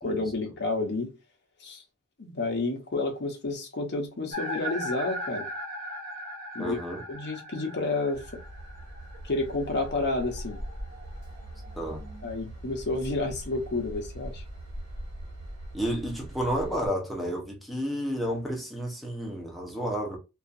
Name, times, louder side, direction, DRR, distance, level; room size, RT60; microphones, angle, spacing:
voice 1, 0.0-1.1 1.6-1.8 2.2-5.5 6.5-6.8 7.1-8.4 9.2-10.6 12.2-14.4, left 2 dB, 50° left, 0.7 m, -30 dB
sound 1, 4.3-12.3, equal, 40° right, 0.9 m, -40 dB
voice 2, 6.6-7.0 11.8-12.0 15.7-20.2, equal, ahead, 0.7 m, -31 dB
Train / Engine, 8.1-16.9, right 1 dB, 90° right, 1.5 m, -41 dB
2.6 x 2.4 x 2.4 m
head